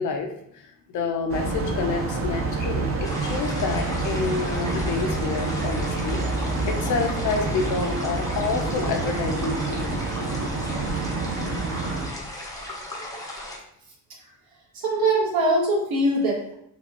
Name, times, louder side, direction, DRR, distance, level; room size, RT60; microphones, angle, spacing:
voice 1, 0.0-6.2 6.6-10.5, left 4 dB, 55° left, 4 dB, 0.6 m, -29 dB
sound 1, 1.3-12.1, right 3 dB, 40° right, 0.6 m, -27 dB
sound 2, 3.0-13.6, left 1 dB, 10° left, 0.6 m, -37 dB
voice 2, 14.7-16.5, right 1 dB, 75° right, -3 dB, 1.3 m, -22 dB
4.0 x 2.3 x 2.9 m, 0.72 s
cardioid pair, 140°, 36 cm